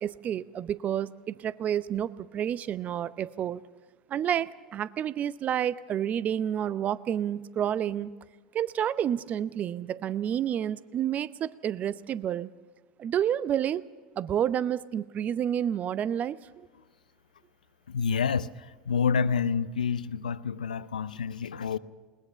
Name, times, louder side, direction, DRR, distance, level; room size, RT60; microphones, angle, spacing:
voice 1, 0.0-3.6 4.1-8.1 8.5-12.5 13.0-13.8 14.2-16.7, right 10 dB, 40° right, 17 dB, 0.7 m, -29 dB
voice 2, 17.9-18.5 18.9-21.8, left 6 dB, 85° left, 16 dB, 0.6 m, -28 dB
20.5 x 19.5 x 6.9 m, 1.4 s
hypercardioid pair, 85°, 4 cm